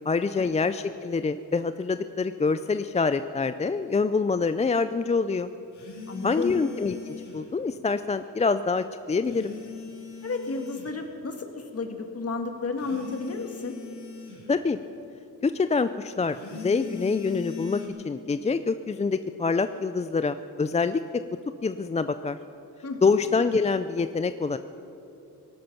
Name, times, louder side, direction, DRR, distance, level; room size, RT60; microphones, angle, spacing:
voice 1, 0.1-5.5 6.2-9.5 14.5-14.8 15.4-21.0 21.6-22.4 23.0-24.6, left 4 dB, 20° left, 11 dB, 0.3 m, -26 dB
sound 1, 5.7-7.5 9.2-11.0 12.8-14.5 16.3-17.9, left 6 dB, 85° left, 2.7 m, -40 dB
voice 2, 6.1-6.6 10.2-13.8 22.8-23.1, left 4 dB, 40° left, 5 dB, 1.7 m, -32 dB
18.5 x 12.0 x 5.9 m, 2.8 s
cardioid pair, 90°, 38 cm